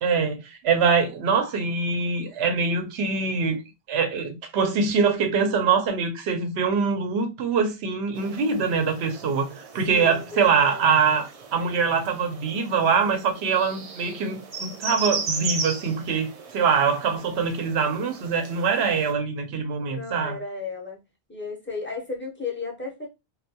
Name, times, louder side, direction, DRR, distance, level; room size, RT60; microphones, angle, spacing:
voice 1, 0.0-3.6 3.9-11.3 11.5-16.3 16.5-20.4, right 5 dB, 90° right, 0.9 m, -23 dB
sound 1, 8.1-19.1, right 4 dB, 55° right, 0.4 m, -37 dB
voice 2, 9.9-10.8 19.8-21.0 21.3-23.1, left 4 dB, 15° left, 0.4 m, -34 dB
2.2 x 2.2 x 2.7 m
omnidirectional pair, 1.1 m